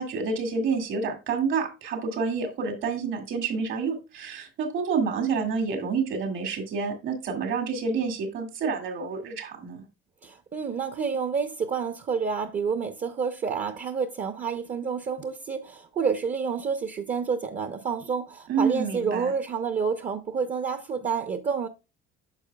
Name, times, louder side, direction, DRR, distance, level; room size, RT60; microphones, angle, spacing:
voice 1, 0.0-9.8 18.5-19.3, right 5 dB, 70° right, 2.2 m, -28 dB
voice 2, 10.2-21.7, right 6 dB, 35° right, 0.6 m, -29 dB
9.7 x 6.5 x 2.3 m
cardioid pair, 120°, 21 cm